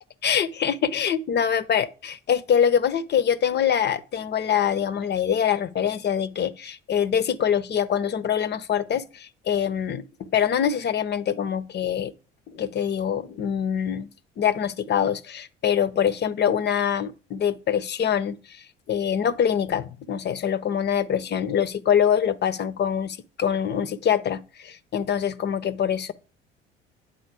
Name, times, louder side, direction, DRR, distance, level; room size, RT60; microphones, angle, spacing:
voice 1, 0.2-10.0 10.3-12.1 12.5-14.1 14.4-26.1, left 8 dB, 35° left, 0.6 m, -24 dB
9.0 x 3.9 x 4.7 m
hypercardioid pair, 60°, 30 cm